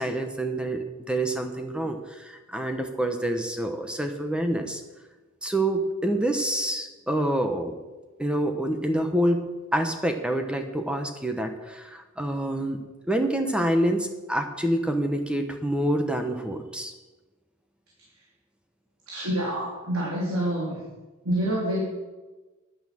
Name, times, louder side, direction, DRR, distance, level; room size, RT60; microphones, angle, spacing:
voice 1, 0.0-4.8 5.4-7.8 8.2-16.9, right 1 dB, 5° right, 5 dB, 1.1 m, -27 dB
voice 2, 19.1-20.8 21.2-21.8, right 1 dB, 90° right, -4 dB, 3.3 m, -27 dB
11.0 x 9.9 x 7.5 m, 1.2 s
head